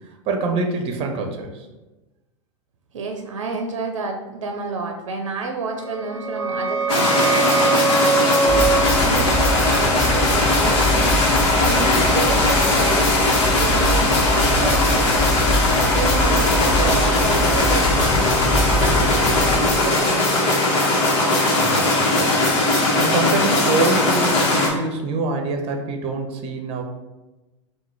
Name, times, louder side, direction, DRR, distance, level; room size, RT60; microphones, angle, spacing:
voice 1, 0.3-1.6 21.6-26.8, right 3 dB, 35° right, 3 dB, 0.8 m, -25 dB
voice 2, 2.9-7.4 8.0-15.4 15.8-18.2 18.8-20.9, right 4 dB, 75° right, 3 dB, 0.6 m, -30 dB
sound 1, 5.8-11.2, right 4 dB, 15° right, 1.2 m, -23 dB
sound 2, 6.9-24.7, left 2 dB, 60° left, 1.3 m, -19 dB
sound 3, 8.5-19.8, equal, 10° left, 0.4 m, -24 dB
3.8 x 2.5 x 4.6 m, 1.1 s
hypercardioid pair, 100°, 16 cm